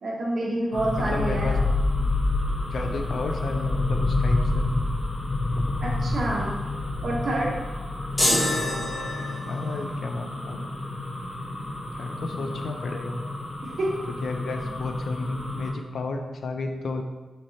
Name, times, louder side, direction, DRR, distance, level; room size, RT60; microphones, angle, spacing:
voice 1, 0.0-1.6 5.8-6.5 6.9-7.6 13.6-13.9, right 1 dB, 50° right, -4 dB, 1.1 m, -28 dB
sound 1, 0.7-15.7, left 2 dB, 85° left, 1.4 m, -28 dB
voice 2, 1.1-1.6 2.0-2.1 2.6-4.7 5.5-5.6 9.5-10.7 11.9-13.2 14.1-17.0, left 3 dB, 70° left, 4 dB, 0.5 m, -32 dB
sound 2, 8.2-9.7, left 1 dB, 25° left, 1.3 m, -25 dB
6.1 x 2.9 x 2.9 m, 1.2 s
wide cardioid pair, 155°, 0 cm